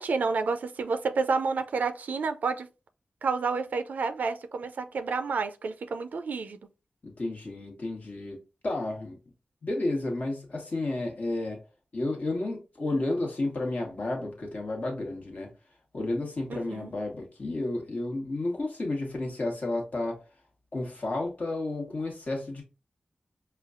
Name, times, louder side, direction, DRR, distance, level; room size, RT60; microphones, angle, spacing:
voice 1, 0.0-2.7 3.2-6.6 16.5-16.9, right 4 dB, 90° right, 0.4 m, -29 dB
voice 2, 7.0-9.2 9.6-11.6 11.9-15.5 15.9-20.2 20.7-22.6, left 2 dB, 65° left, 1.3 m, -32 dB
4.9 x 2.3 x 2.4 m
cardioid pair, 50°, 3 cm